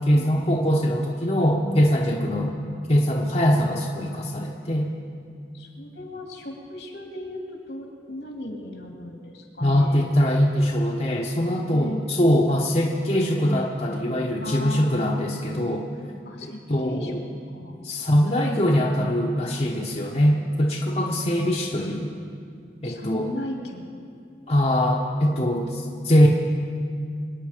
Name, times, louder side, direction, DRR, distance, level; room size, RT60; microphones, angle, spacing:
voice 1, 0.0-2.5 2.9-4.9 9.6-15.9 16.4-17.2 17.8-22.1 22.8-23.3 24.5-26.3, equal, 35° left, -1 dB, 1.1 m, -22 dB
voice 2, 5.5-10.0 11.7-12.1 14.4-15.4 16.2-17.1 17.5-17.8 22.8-23.8 25.6-26.0, left 1 dB, 80° left, 1 dB, 2.8 m, -36 dB
25.0 x 9.4 x 5.1 m, 2.3 s
head